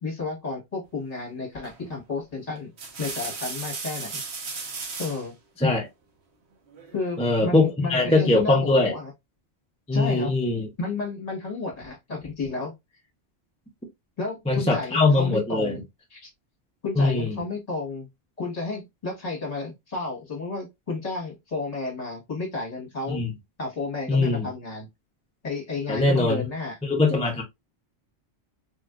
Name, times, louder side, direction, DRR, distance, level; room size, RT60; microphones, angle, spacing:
voice 1, 0.0-2.7 3.0-4.2 5.0-5.4 6.9-9.1 9.9-10.4 10.8-12.7 14.2-15.8 16.1-16.3 16.8-18.1 18.4-23.2 23.6-24.9 25.4-26.8, left 3 dB, 40° left, 1.2 m, -32 dB
sound 1, 1.6-1.9 2.6-5.3 6.7-7.4, right 4 dB, 75° right, 1.1 m, -36 dB
voice 2, 7.2-8.9 9.9-10.7 14.5-15.8 17.0-17.4 23.1-23.3 24.1-24.5 25.9-26.4 26.8-27.4, left 2 dB, 10° left, 0.5 m, -22 dB
3.4 x 2.4 x 2.2 m
omnidirectional pair, 1.1 m